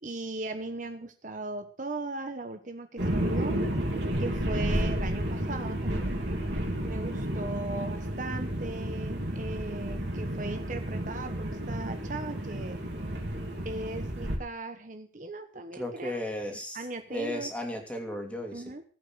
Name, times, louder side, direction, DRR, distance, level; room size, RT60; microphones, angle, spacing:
voice 1, 0.0-3.6 4.2-6.1 6.8-12.8 13.6-16.2 16.5-17.5 18.5-18.8, right 2 dB, 45° right, 7 dB, 1.2 m, -38 dB
sound 1, 3.0-14.4, right 1 dB, 80° right, 3.5 m, -31 dB
voice 2, 15.7-16.8 17.1-18.6, left 1 dB, 5° left, 2 dB, 2.9 m, -35 dB
16.5 x 8.6 x 6.3 m, 0.43 s
head